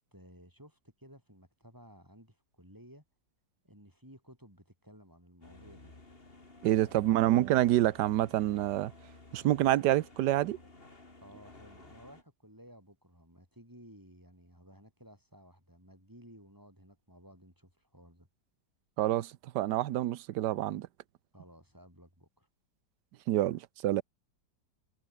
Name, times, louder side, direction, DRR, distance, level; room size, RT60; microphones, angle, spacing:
voice 1, 0.0-3.0 3.6-5.9 6.4-7.2 11.2-18.3 21.3-22.5, equal, 10° right, 6.7 m, -56 dB
sound 1, 5.4-12.2, left 2 dB, 30° left, 3.4 m, -54 dB
voice 2, 6.6-8.9 9.3-10.6 19.0-20.9 23.3-24.0, right 14 dB, 70° right, 1.3 m, -27 dB
omnidirectional pair, 2.0 m